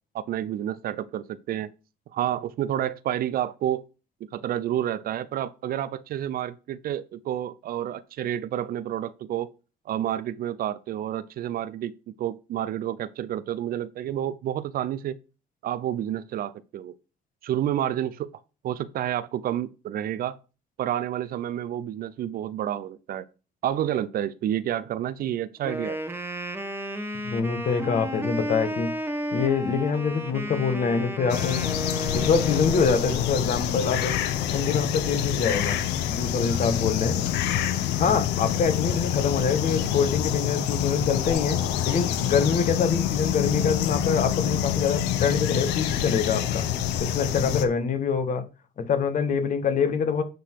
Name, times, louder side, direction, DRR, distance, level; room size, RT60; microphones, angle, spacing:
voice 1, 0.1-1.7 2.1-3.9 4.3-9.5 9.9-11.9 12.2-15.2 15.6-16.9 17.4-18.3 18.6-20.4 20.8-23.3 23.6-26.0, right 11 dB, 60° right, 0.7 m, -29 dB
Wind instrument woodwind instrument, 25.6-33.3, right 1 dB, 15° right, 1.2 m, -33 dB
voice 2, 27.2-28.9 29.3-31.6 32.1-34.1 34.5-35.8 36.1-37.3 38.0-41.6 41.8-46.7 47.0-48.4 48.8-50.2, left 6 dB, 50° left, 1.6 m, -25 dB
sound 1, 31.3-47.6, left 10 dB, 90° left, 0.9 m, -26 dB
10.0 x 4.0 x 4.7 m
cardioid pair, 110°, 17 cm